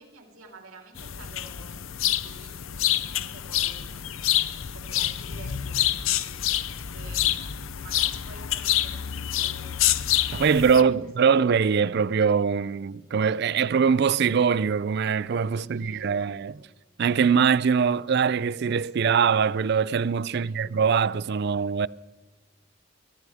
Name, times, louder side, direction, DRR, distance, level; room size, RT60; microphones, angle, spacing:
voice 1, 0.0-1.8 2.1-4.0 4.7-7.3 7.7-11.3 15.6-16.7 20.3-20.6, right 3 dB, 90° right, 3.6 m, -50 dB
sound 1, 0.9-10.8, left 12 dB, 75° left, 0.6 m, -27 dB
voice 2, 10.3-16.6 17.0-21.9, right 6 dB, 50° right, 0.4 m, -22 dB
23.0 x 14.5 x 3.5 m
head